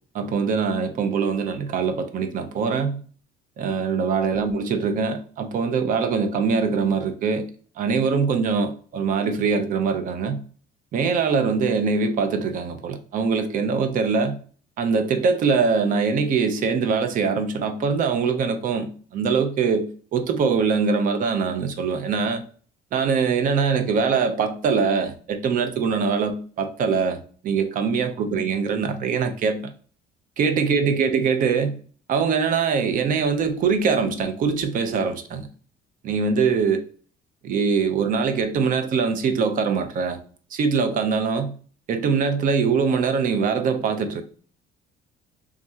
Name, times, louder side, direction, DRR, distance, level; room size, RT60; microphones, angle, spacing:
voice 1, 0.1-3.0 3.6-7.5 7.8-10.4 10.9-14.4 14.8-22.4 22.9-29.7 30.4-31.8 32.1-35.5 36.0-36.8 37.4-40.2 40.5-41.5 41.9-44.2, right 5 dB, 45° right, 0.6 m, -23 dB
3.6 x 2.5 x 4.1 m
cardioid pair, 165°, 19 cm